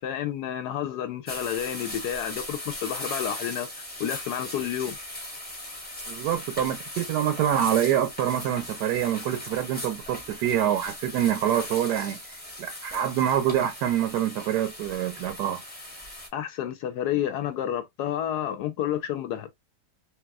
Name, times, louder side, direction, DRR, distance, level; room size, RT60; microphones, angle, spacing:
voice 1, 0.0-5.0 16.3-19.5, left 10 dB, 75° left, 1.1 m, -30 dB
sound 1, 1.2-16.3, left 1 dB, 10° left, 0.7 m, -38 dB
voice 2, 6.1-12.2 12.6-15.6, right 10 dB, 75° right, 1.1 m, -26 dB
3.2 x 2.9 x 2.3 m
omnidirectional pair, 1.8 m